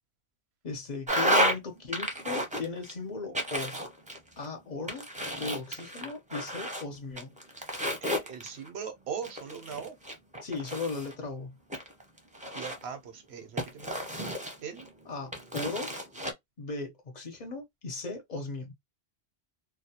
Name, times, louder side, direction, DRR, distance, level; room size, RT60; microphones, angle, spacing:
voice 1, 0.6-3.8 4.4-5.1 5.4-7.3 10.4-11.6 15.0-15.9 16.6-18.7, left 3 dB, 50° left, 0.7 m, -37 dB
sound 1, 1.1-1.6 1.9-2.9 3.3-4.5 4.9-6.8 7.2-8.7 9.2-11.1 11.7-12.9 13.6-14.9 15.3-16.3, equal, 10° right, 0.5 m, -31 dB
voice 2, 8.0-10.0 12.5-14.2 14.6-14.9, right 7 dB, 85° right, 1.0 m, -40 dB
2.3 x 2.1 x 2.7 m
omnidirectional pair, 1.0 m